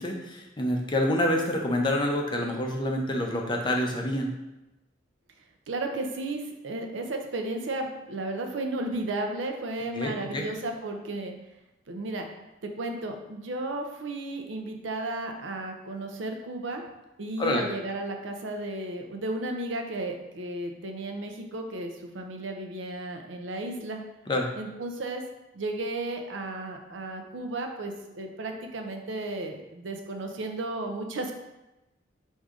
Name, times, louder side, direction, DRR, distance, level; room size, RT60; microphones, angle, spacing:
voice 1, 0.0-4.3 9.9-10.5 17.4-17.6 24.3-24.5, left 1 dB, 25° left, 1 dB, 0.5 m, -27 dB
voice 2, 5.7-11.3 11.9-12.3 12.6-16.8 17.2-24.0 24.6-25.2 25.5-31.4, right 2 dB, 85° right, 3 dB, 0.6 m, -34 dB
4.8 x 2.7 x 3.6 m, 0.99 s
head